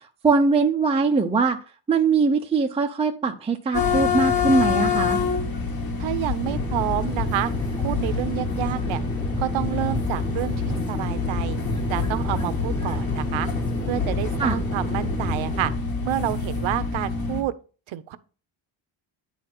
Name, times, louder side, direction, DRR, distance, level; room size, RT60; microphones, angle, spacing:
voice 1, 0.2-1.6 1.9-5.2 14.4-14.6, right 4 dB, 15° right, 0.5 m, -21 dB
sound 1, 3.7-17.4, left 4 dB, 50° left, 2.0 m, -26 dB
voice 2, 6.0-7.5 7.8-9.0 9.4-10.5 10.9-11.6 11.9-13.5 13.9-15.7 16.0-17.5 17.9-18.2, right 13 dB, 80° right, 0.9 m, -28 dB
sound 2, 6.4-15.8, equal, 10° left, 1.0 m, -34 dB
9.6 x 4.2 x 6.0 m
cardioid pair, 170°, 47 cm